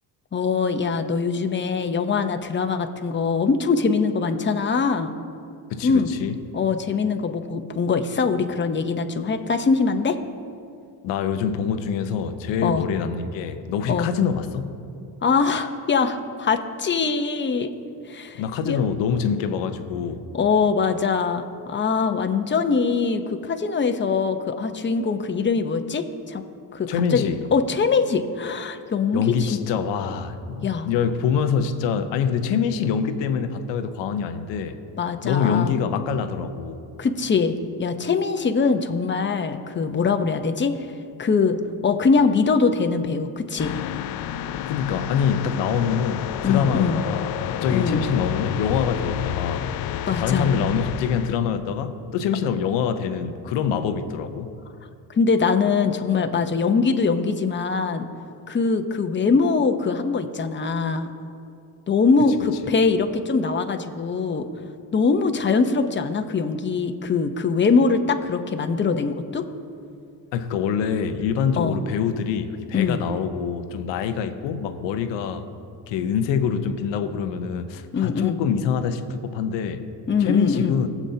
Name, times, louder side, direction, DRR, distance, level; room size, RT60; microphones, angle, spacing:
voice 1, 0.3-5.1 5.8-6.1 6.5-10.2 12.6-12.8 13.9-14.1 15.2-17.7 18.1-18.8 20.3-26.4 26.7-29.5 30.6-30.9 35.0-35.7 37.0-41.6 41.8-43.7 46.4-47.0 47.7-48.0 50.1-50.5 55.1-58.1 58.5-61.1 61.9-64.5 64.9-69.5 71.6-71.8 72.7-73.0 77.9-78.4 80.1-80.8, left 5 dB, 25° left, 7 dB, 0.8 m, -22 dB
voice 2, 5.7-6.4 11.0-14.7 18.4-20.2 26.9-27.4 29.1-34.8 35.2-36.8 44.7-49.7 50.1-54.5 70.3-75.4 75.9-79.9 80.2-80.9, left 7 dB, 90° left, 9 dB, 0.8 m, -25 dB
sound 1, 43.6-51.4, left 10 dB, 55° left, 0.5 m, -30 dB
19.5 x 7.3 x 2.8 m, 2.5 s
cardioid pair, 85°, 43 cm